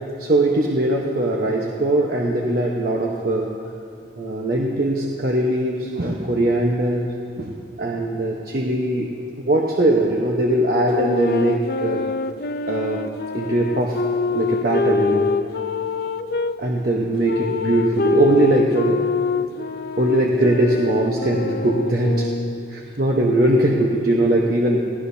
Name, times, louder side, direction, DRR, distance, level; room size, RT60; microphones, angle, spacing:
voice 1, 0.0-3.6 4.2-9.1 9.4-12.0 12.7-13.0 13.3-14.0 14.3-15.3 16.6-19.0 20.0-22.3 22.7-24.8, right 1 dB, 50° right, -2 dB, 1.1 m, -20 dB
sound 1, 10.9-16.5 17.2-22.8, left 4 dB, 55° left, 0.5 m, -25 dB
28.5 x 18.0 x 2.8 m, 2.5 s
head